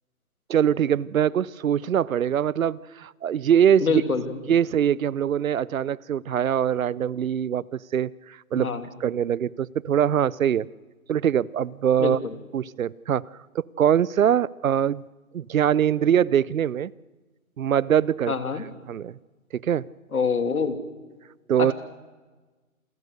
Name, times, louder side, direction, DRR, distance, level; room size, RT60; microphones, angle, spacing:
voice 1, 0.5-4.0 4.5-8.7 9.0-10.7 11.1-12.2 12.5-13.3 13.5-15.0 15.3-16.9 17.6-18.3 18.9-19.2 19.5-19.9 21.5-21.7, right 9 dB, 70° right, 24 dB, 0.7 m, -23 dB
voice 2, 3.8-4.3 8.5-8.8 12.0-12.1 18.3-18.6 20.1-20.8 21.6-21.7, left 5 dB, 80° left, 8 dB, 3.0 m, -25 dB
28.0 x 17.5 x 6.6 m, 1.3 s
hypercardioid pair, 170°, 43 cm